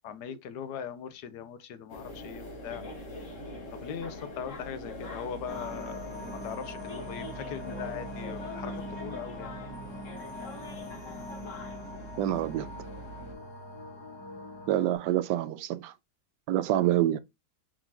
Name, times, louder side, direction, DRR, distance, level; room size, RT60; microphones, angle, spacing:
voice 1, 0.0-2.8 3.7-9.5, left 8 dB, 80° left, 1.2 m, -40 dB
sound 1, 1.9-13.3, left 1 dB, 50° left, 1.5 m, -42 dB
sound 2, 5.5-15.0, left 1 dB, 20° left, 1.0 m, -42 dB
voice 2, 12.2-12.7 14.7-15.9 16.5-17.2, right 13 dB, 80° right, 1.2 m, -27 dB
4.8 x 3.8 x 2.8 m
omnidirectional pair, 1.8 m